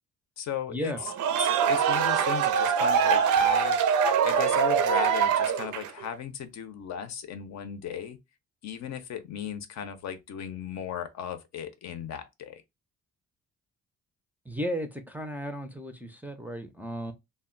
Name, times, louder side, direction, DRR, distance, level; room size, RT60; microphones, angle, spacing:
voice 1, 0.4-1.1 1.4-3.8 4.2-8.2 8.6-12.6, left 9 dB, 65° left, 0.6 m, -36 dB
sound 1, 1.0-6.0, right 7 dB, 75° right, 0.5 m, -23 dB
voice 2, 14.5-17.1, equal, 5° right, 0.4 m, -34 dB
2.2 x 2.0 x 3.6 m
cardioid pair, 90°, 30 cm